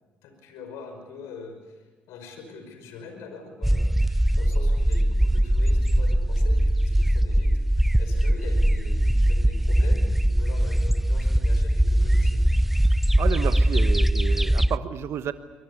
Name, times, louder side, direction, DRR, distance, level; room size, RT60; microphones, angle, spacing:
voice 1, 0.2-7.5 8.0-12.5, left 4 dB, 75° left, 5 dB, 5.4 m, -43 dB
sound 1, 3.6-14.8, right 1 dB, 5° right, 0.6 m, -21 dB
voice 2, 13.2-15.3, right 9 dB, 60° right, 11 dB, 1.1 m, -31 dB
24.5 x 20.0 x 8.4 m, 1.3 s
hypercardioid pair, 55°, 5 cm